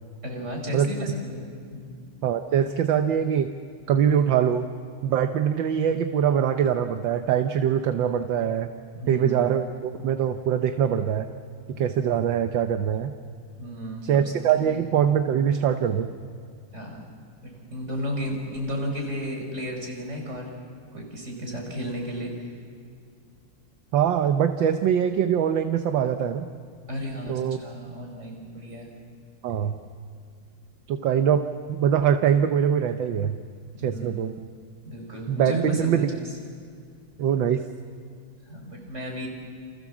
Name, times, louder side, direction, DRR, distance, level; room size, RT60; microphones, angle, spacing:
voice 1, 0.2-2.0 9.0-9.5 13.6-14.3 14.7-14.8 16.7-17.0 17.4-20.6 20.9-22.5 26.9-28.9 33.7-34.3 34.9-36.2 38.4-39.3, equal, 30° right, 1 dB, 5.4 m, -33 dB
voice 2, 2.2-3.5 3.9-4.7 5.0-8.7 9.1-11.3 11.7-13.1 14.0-16.1 23.9-26.5 27.3-27.6 29.4-29.8 30.9-33.4 33.8-34.3 35.3-36.1 37.2-37.7, right 8 dB, 65° right, 7 dB, 1.5 m, -23 dB
29.0 x 28.0 x 7.3 m, 2.2 s
omnidirectional pair, 2.3 m